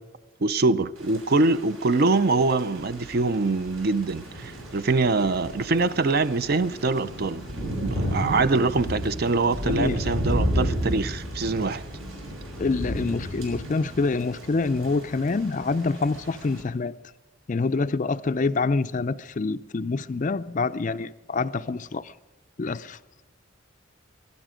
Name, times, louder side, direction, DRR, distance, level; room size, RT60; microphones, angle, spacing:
voice 1, 0.4-7.4 7.8-11.8, right 3 dB, 45° right, 0.5 m, -24 dB
Thunder / Rain, 1.0-16.6, equal, 80° right, 6.7 m, -33 dB
voice 2, 9.6-10.2 12.6-16.9 17.5-22.1 22.6-23.0, left 3 dB, 35° left, 0.4 m, -26 dB
21.5 x 12.0 x 5.0 m
head